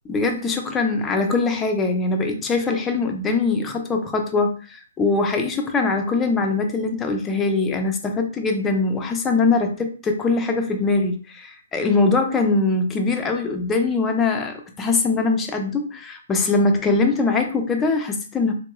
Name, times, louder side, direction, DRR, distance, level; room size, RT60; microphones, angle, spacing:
voice 1, 0.1-18.5, left 3 dB, 10° left, 3 dB, 0.5 m, -22 dB
3.6 x 2.3 x 3.0 m, 0.38 s
hypercardioid pair, 155°, 0 cm